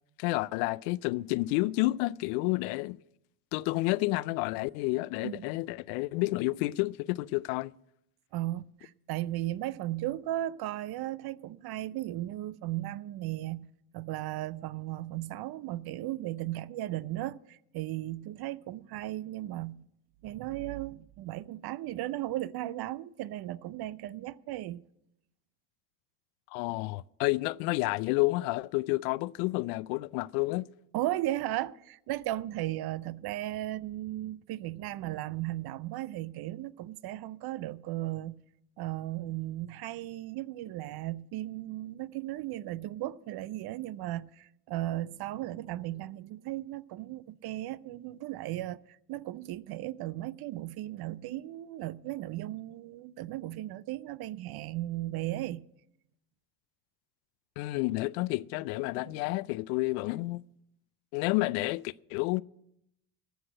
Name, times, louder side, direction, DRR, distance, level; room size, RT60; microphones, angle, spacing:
voice 1, 0.2-3.0 3.5-7.7 26.5-30.7 57.6-60.4 61.1-62.4, left 21 dB, 75° left, 0.5 m, -30 dB
voice 2, 8.3-19.9 20.2-24.8 30.9-38.4 38.8-48.8 49.1-55.6 59.1-59.2, right 15 dB, 55° right, 0.6 m, -36 dB
13.5 x 6.2 x 8.9 m
hypercardioid pair, 70°, 45 cm